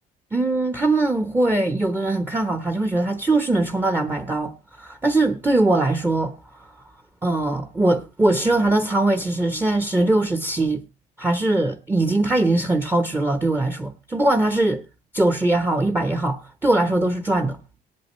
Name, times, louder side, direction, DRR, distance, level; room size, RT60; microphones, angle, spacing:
voice 1, 0.3-6.7 7.2-10.8 11.2-14.8 15.1-17.6, right 2 dB, 10° right, 1.0 m, -21 dB
18.5 x 8.4 x 3.1 m
cardioid pair, 110°, 17 cm